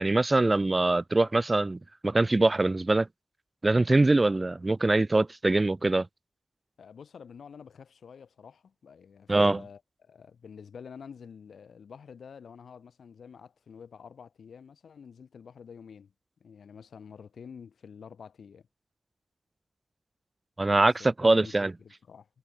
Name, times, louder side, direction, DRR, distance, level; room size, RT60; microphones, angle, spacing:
voice 1, 0.0-3.1 3.6-6.1 9.3-9.6 20.6-21.7, right 2 dB, 25° right, 1.7 m, -23 dB
voice 2, 6.8-16.1 16.4-18.7 20.7-22.3, left 6 dB, 85° left, 7.0 m, -48 dB
wide cardioid pair, 100°, 0 cm